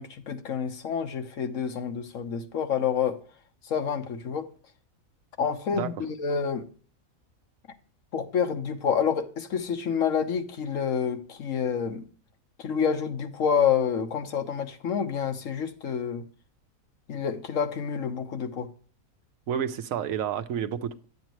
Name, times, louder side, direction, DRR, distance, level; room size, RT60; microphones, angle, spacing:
voice 1, 0.0-3.2 3.7-4.5 5.4-6.7 8.1-12.1 12.6-16.2 17.1-18.7, left 7 dB, 65° left, 1.3 m, -28 dB
voice 2, 19.5-21.1, right 8 dB, 75° right, 1.1 m, -30 dB
10.5 x 8.0 x 3.0 m
omnidirectional pair, 1.5 m